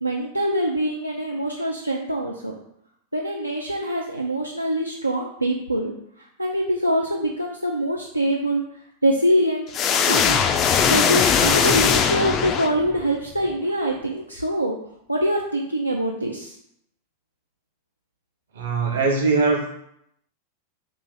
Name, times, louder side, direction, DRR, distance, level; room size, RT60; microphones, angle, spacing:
voice 1, 0.0-2.6 3.1-5.9 6.4-8.6 9.0-9.7 10.1-10.4 10.8-14.8 15.1-16.5, right 1 dB, 85° right, -1 dB, 0.3 m, -24 dB
sound 1, 9.7-13.1, left 7 dB, 30° left, 0.3 m, -20 dB
voice 2, 18.5-19.8, right 4 dB, 65° right, 0 dB, 0.8 m, -21 dB
2.8 x 2.5 x 3.9 m, 0.74 s
figure-of-eight pair, 90°, 0 cm